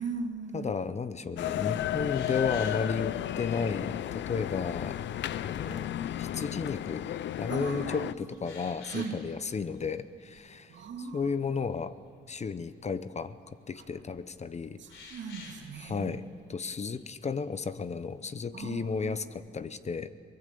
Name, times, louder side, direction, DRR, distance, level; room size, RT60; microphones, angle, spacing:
voice 1, 0.0-0.7 5.7-5.9 7.5-8.1 8.9-9.3 10.7-11.3 13.8-13.9 14.8-16.1 18.5-19.2, right 5 dB, 65° right, 3 dB, 2.8 m, -38 dB
voice 2, 0.5-5.0 5.4-5.9 6.2-7.0 7.4-11.9 12.3-13.4 13.7-14.8 15.8-16.2 16.5-20.1, left 5 dB, 35° left, 13 dB, 0.8 m, -33 dB
sound 1, 1.4-8.1, left 12 dB, 65° left, 0.6 m, -33 dB
sound 2, 2.1-2.9 3.6-3.7 4.2-4.7 5.2-5.7 6.3-6.4 6.8-7.3 7.5-9.4 9.7-9.9 10.2-10.4 14.9-15.7 16.7-17.3, left 4 dB, 85° left, 3.8 m, -50 dB
24.0 x 19.0 x 6.9 m, 2.6 s
cardioid pair, 90°, 20 cm